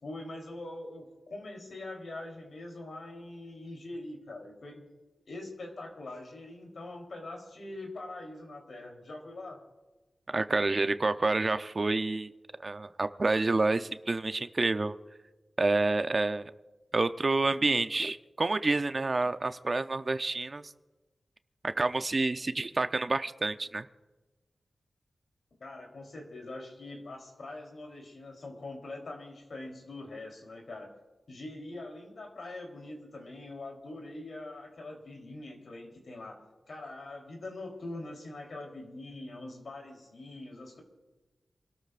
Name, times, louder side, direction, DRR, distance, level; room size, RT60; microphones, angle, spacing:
voice 1, 0.0-4.9 5.3-9.6 25.6-30.9 31.3-36.4 36.7-40.8, left 2 dB, 70° left, 1 dB, 3.6 m, -43 dB
voice 2, 10.3-12.3 12.6-14.9 15.6-16.5 16.9-20.6 21.6-23.9, right 3 dB, 40° right, 10 dB, 0.7 m, -28 dB
28.0 x 13.0 x 2.5 m, 1.2 s
wide cardioid pair, 75°, 0 cm